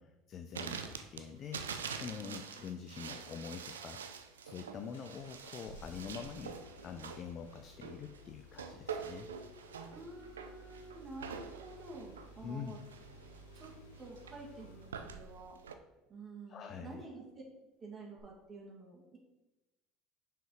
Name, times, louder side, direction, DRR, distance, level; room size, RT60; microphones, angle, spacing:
voice 1, 0.0-4.0 4.4-6.6 6.8-9.3 12.4-12.8 16.5-17.0, left 7 dB, 45° left, 7 dB, 0.5 m, -45 dB
sound 1, 0.5-15.8, right 6 dB, 90° right, 0.5 m, -46 dB
Engine starting, 4.9-15.5 18.2-18.3, equal, 80° left, 1.1 m, -56 dB
voice 2, 9.9-12.8 13.5-15.6 16.1-17.2 17.8-19.2, right 3 dB, 35° right, -2 dB, 2.4 m, -50 dB
6.2 x 4.9 x 4.9 m, 1.0 s
hypercardioid pair, 75°, 0 cm